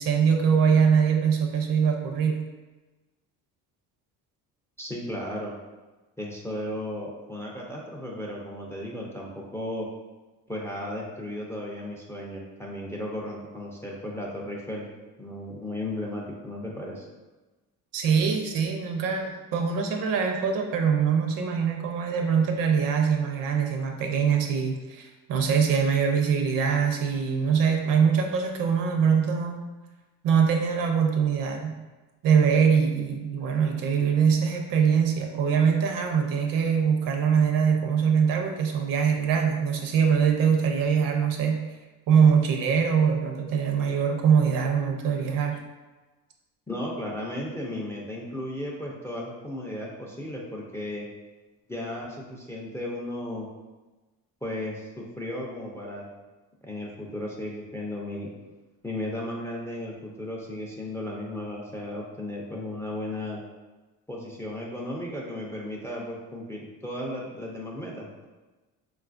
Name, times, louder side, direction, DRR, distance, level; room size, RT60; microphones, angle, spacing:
voice 1, 0.0-2.4 17.9-29.6 30.2-31.8 32.2-41.6 42.1-45.6, right 6 dB, 70° right, 3 dB, 0.6 m, -23 dB
voice 2, 4.8-5.5 6.2-9.9 10.5-14.9 15.2-17.1 46.7-51.1 51.7-53.5 54.4-56.1 56.6-58.3 58.8-63.4 64.1-68.3, left 1 dB, 10° left, -2 dB, 0.3 m, -35 dB
3.7 x 2.3 x 2.4 m, 1.2 s
cardioid pair, 110°, 35 cm